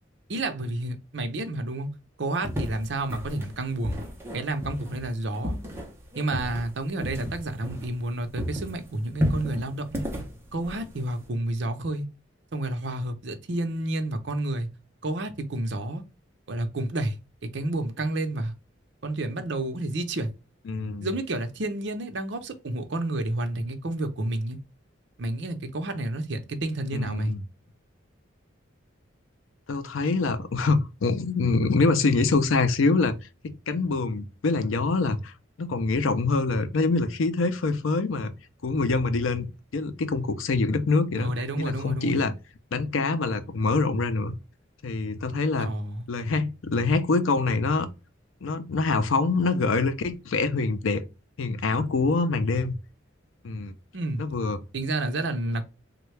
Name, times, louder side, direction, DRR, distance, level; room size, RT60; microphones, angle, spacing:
voice 1, 0.3-1.9 2.2-4.0 4.3-5.6 6.1-10.0 10.5-12.1 12.5-14.7 15.0-16.0 16.5-17.2 17.5-18.5 19.0-20.3 21.0-24.6 25.2-27.3 41.2-42.2 45.6-46.0 53.9-54.2 54.7-55.7, right 2 dB, 60° right, 0.6 m, -30 dB
sound 1, 2.4-8.1 8.4-11.3, equal, 10° right, 0.7 m, -33 dB
voice 2, 20.7-21.1 26.9-27.4 29.7-33.2 33.4-35.3 35.6-38.3 38.6-41.3 41.6-42.3 42.7-44.3 44.8-45.7 46.1-47.9 48.4-51.0 51.4-52.7 53.4-53.7 54.2-54.6, left 3 dB, 80° left, 0.5 m, -25 dB
3.5 x 2.2 x 3.1 m
head